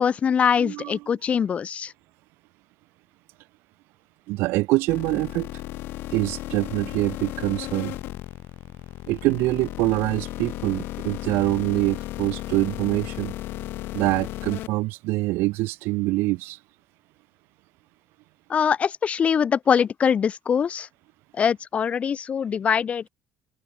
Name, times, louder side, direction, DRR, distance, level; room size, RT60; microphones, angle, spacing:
voice 1, 0.0-1.9 18.5-20.9 21.4-23.1, left 7 dB, 35° left, 0.4 m, -23 dB
voice 2, 0.6-1.0 4.3-5.5 6.1-7.9 9.1-13.3 13.9-16.6, right 21 dB, 85° right, 1.7 m, -25 dB
sound 1, 4.9-14.7, left 16 dB, 75° left, 4.7 m, -35 dB
cardioid pair, 120°, 4 cm